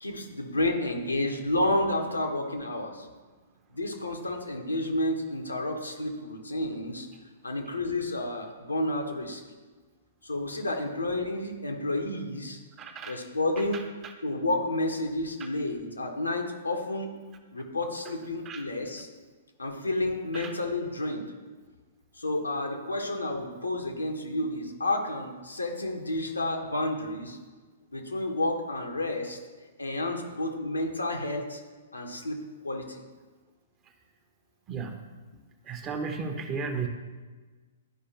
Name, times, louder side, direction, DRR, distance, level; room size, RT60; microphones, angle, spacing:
voice 1, 0.0-3.1 3.7-7.1 7.4-9.4 10.2-12.6 13.1-13.8 14.2-17.1 17.5-19.1 19.6-21.3 22.1-27.4 27.9-29.4 29.8-31.6 31.9-32.4 32.6-33.0, left 1 dB, 80° left, 3 dB, 1.1 m, -30 dB
voice 2, 12.8-13.2 13.6-14.1 15.4-15.5 18.4-18.6 20.3-20.5 34.7-35.0 35.6-36.9, right 5 dB, 25° right, 5 dB, 0.8 m, -35 dB
11.5 x 4.9 x 2.9 m, 1.3 s
figure-of-eight pair, 115°, 0 cm